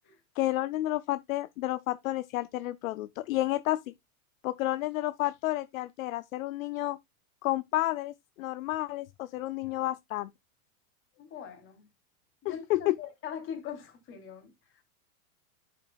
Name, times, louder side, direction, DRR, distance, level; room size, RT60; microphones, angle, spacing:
voice 1, 0.4-3.9 4.4-7.0 7.4-10.3 12.4-13.0, left 16 dB, 65° left, 0.6 m, -31 dB
voice 2, 11.2-11.8 12.4-14.8, left 8 dB, 25° left, 3.0 m, -42 dB
10.5 x 6.6 x 2.3 m
supercardioid pair, 160°, 45 cm